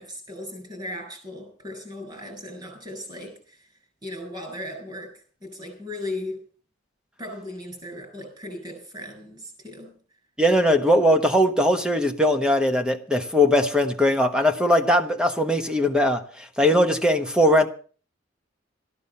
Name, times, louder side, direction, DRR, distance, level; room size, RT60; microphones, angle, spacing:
voice 1, 0.0-3.7 4.0-6.4 7.2-9.9, left 1 dB, 25° right, 7.1 m, -37 dB
voice 2, 10.4-17.7, left 1 dB, 5° right, 1.2 m, -20 dB
14.5 x 11.5 x 5.6 m
head